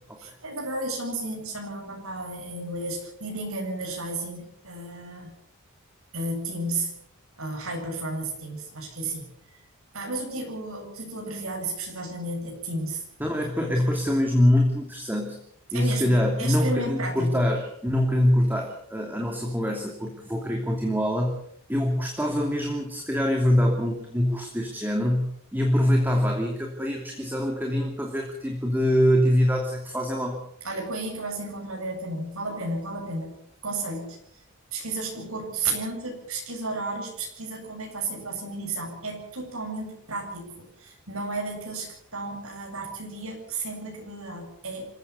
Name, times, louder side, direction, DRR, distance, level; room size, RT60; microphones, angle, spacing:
voice 1, 0.2-5.3 6.1-6.9 7.4-9.3 9.9-13.0 13.6-13.7 15.7-17.4 30.6-34.2 34.7-44.9, right 2 dB, 70° right, 2 dB, 7.8 m, -33 dB
voice 2, 13.2-15.4 15.7-21.3 21.7-30.4, left 1 dB, 10° right, 1 dB, 2.7 m, -24 dB
26.5 x 16.5 x 7.0 m, 0.70 s
head